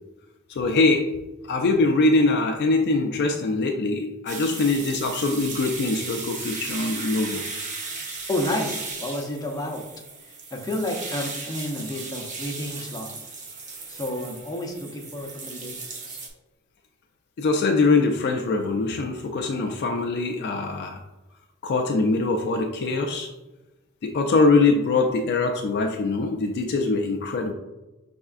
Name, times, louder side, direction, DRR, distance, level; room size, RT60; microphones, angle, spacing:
voice 1, 0.5-1.1 1.5-7.4 17.4-21.0 21.6-23.3 24.0-27.5, left 3 dB, 50° left, 4 dB, 0.3 m, -23 dB
sound 1, 4.3-16.3, right 4 dB, 35° right, 0.7 m, -36 dB
voice 2, 8.3-9.8 10.2-13.1 13.9-16.2, left 1 dB, 15° left, 1 dB, 0.7 m, -31 dB
5.5 x 3.5 x 2.4 m, 1.1 s
head